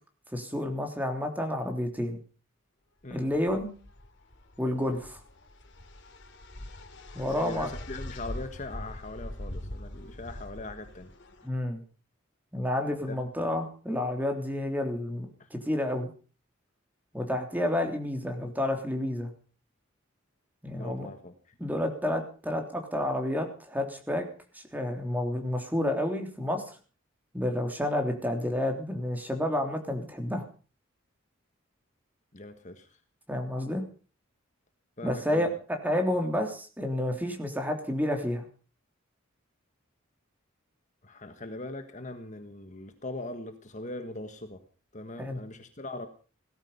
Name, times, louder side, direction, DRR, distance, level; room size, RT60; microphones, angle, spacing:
voice 1, 0.3-2.2 3.1-3.7 4.6-5.2 7.1-7.7 11.4-11.8 12.5-16.1 17.1-19.3 20.6-21.1 21.6-24.3 24.5-26.8 27.3-30.4 33.3-33.8 35.0-38.4 45.2-45.4, left 1 dB, 10° right, 4 dB, 3.2 m, -30 dB
sound 1, 3.1-11.5, left 1 dB, 60° left, 2.6 m, -43 dB
voice 2, 7.3-11.1 13.1-13.2 15.4-15.5 20.7-21.5 32.3-33.0 35.0-35.5 41.0-44.6 44.9-46.1, left 2 dB, 35° left, 8 dB, 1.5 m, -41 dB
17.5 x 14.0 x 5.6 m, 0.39 s
head